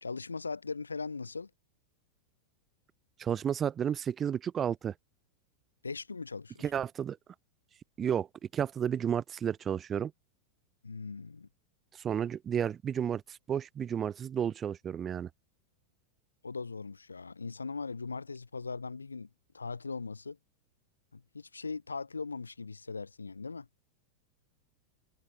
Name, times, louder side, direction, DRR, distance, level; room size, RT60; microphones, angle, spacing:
voice 1, 0.0-1.5 5.8-6.6 10.8-11.5 16.4-19.3 19.5-20.4 21.1-23.7, left 4 dB, 75° left, 1.3 m, -39 dB
voice 2, 3.2-4.9 6.6-7.2 8.0-8.3 8.5-10.1 11.9-15.3, right 8 dB, 25° right, 1.1 m, -32 dB
figure-of-eight pair, 90°, 0 cm